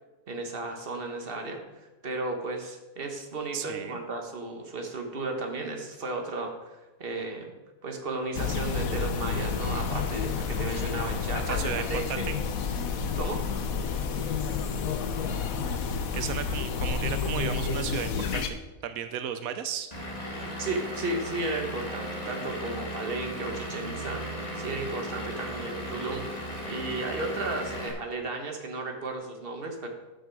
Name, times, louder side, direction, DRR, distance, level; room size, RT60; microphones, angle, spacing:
voice 1, 0.3-7.6 7.8-12.3 13.2-13.4 20.6-24.2 24.5-26.3 26.6-29.9, right 2 dB, 45° right, 3 dB, 1.6 m, -34 dB
voice 2, 3.5-4.0 11.5-12.4 16.1-19.9, right 8 dB, 90° right, 10 dB, 1.1 m, -34 dB
sound 1, 8.3-18.5, left 5 dB, 85° left, 1.3 m, -30 dB
Vehicle / Engine, 19.9-27.9, equal, 30° left, 1.9 m, -36 dB
12.0 x 6.7 x 4.7 m, 1.1 s
omnidirectional pair, 1.4 m